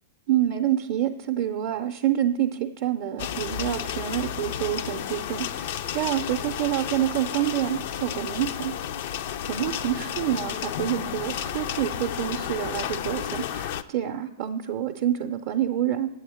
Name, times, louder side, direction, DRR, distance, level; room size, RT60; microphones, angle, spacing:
voice 1, 0.3-8.7 9.4-16.1, right 12 dB, 50° right, 4 dB, 0.5 m, -27 dB
sound 1, 3.2-13.8, left 9 dB, 55° left, 0.4 m, -32 dB
8.4 x 7.8 x 4.9 m, 1.0 s
hypercardioid pair, 105°, 0 cm